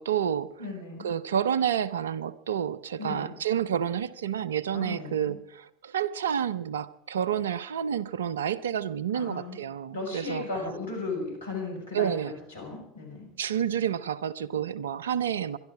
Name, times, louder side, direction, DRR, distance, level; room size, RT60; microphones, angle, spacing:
voice 1, 0.0-0.5 1.0-10.4 11.9-12.3 13.4-15.6, right 9 dB, 80° right, 17 dB, 0.7 m, -29 dB
voice 2, 0.6-1.1 3.0-3.3 4.7-5.3 9.1-9.6 9.9-12.1 12.5-13.3, left 3 dB, 80° left, 1 dB, 5.9 m, -36 dB
23.5 x 11.5 x 4.8 m, 0.74 s
hypercardioid pair, 75°, 0 cm